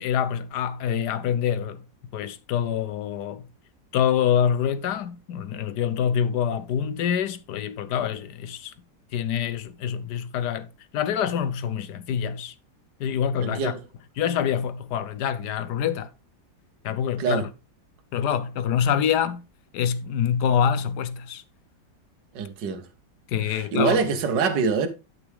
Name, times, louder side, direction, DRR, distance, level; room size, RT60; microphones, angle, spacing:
voice 1, 0.0-1.8 2.1-3.5 3.9-8.7 9.1-10.7 10.9-12.5 13.0-13.7 14.2-16.1 16.8-17.5 18.1-19.4 19.7-21.4 23.3-24.0, left 8 dB, 70° left, 1.3 m, -26 dB
voice 2, 13.4-13.8 17.2-17.4 22.3-22.9 23.5-24.9, right 5 dB, 70° right, 1.8 m, -24 dB
11.5 x 6.1 x 3.5 m
omnidirectional pair, 2.0 m